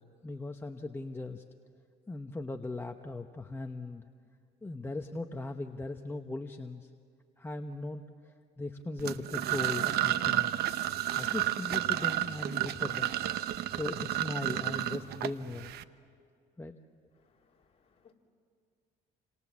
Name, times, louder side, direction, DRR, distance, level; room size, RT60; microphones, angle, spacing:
voice 1, 0.2-1.4 2.1-4.1 4.6-6.9 7.4-10.5 11.1-13.1 13.7-15.7 16.6-16.7, left 2 dB, 15° left, 5 dB, 0.9 m, -38 dB
sound 1, 9.0-15.8, right 14 dB, 70° right, 0.8 m, -31 dB
voice 2, 17.1-18.1, left 7 dB, 35° left, -1 dB, 3.5 m, -66 dB
29.5 x 26.5 x 7.4 m, 2.3 s
cardioid pair, 110°, 17 cm